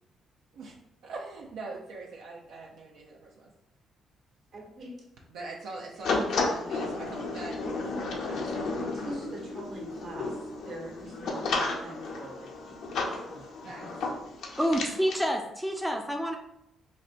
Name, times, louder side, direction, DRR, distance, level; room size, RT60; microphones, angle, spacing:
voice 1, 1.0-3.5 5.3-7.9 8.3-8.9 13.6-13.8, right 3 dB, 80° right, -2 dB, 0.5 m, -42 dB
voice 2, 4.5-4.9 8.7-12.8 13.2-13.5 13.8-13.9, right 1 dB, 60° right, -2 dB, 1.1 m, -43 dB
sound 1, 6.0-15.2, left 3 dB, 75° left, 0.5 m, -33 dB
voice 3, 14.6-16.4, equal, ahead, 2 dB, 0.4 m, -28 dB
4.1 x 2.1 x 2.5 m, 0.80 s
cardioid pair, 90°, 0 cm